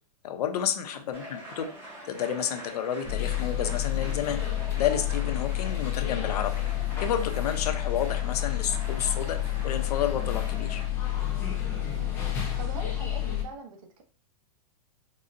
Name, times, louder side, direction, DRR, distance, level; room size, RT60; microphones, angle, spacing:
voice 1, 0.2-1.7 2.0-4.4 4.8-6.5 7.0-10.8, left 9 dB, 70° left, 7 dB, 0.6 m, -30 dB
sound 1, 1.1-10.9, right 1 dB, 10° right, 1.0 m, -45 dB
sound 2, 3.0-13.4, left 12 dB, 10° left, 0.4 m, -29 dB
voice 2, 12.6-14.0, right 4 dB, 60° right, 4 dB, 0.7 m, -43 dB
3.8 x 2.1 x 2.5 m, 0.42 s
supercardioid pair, 160°, 21 cm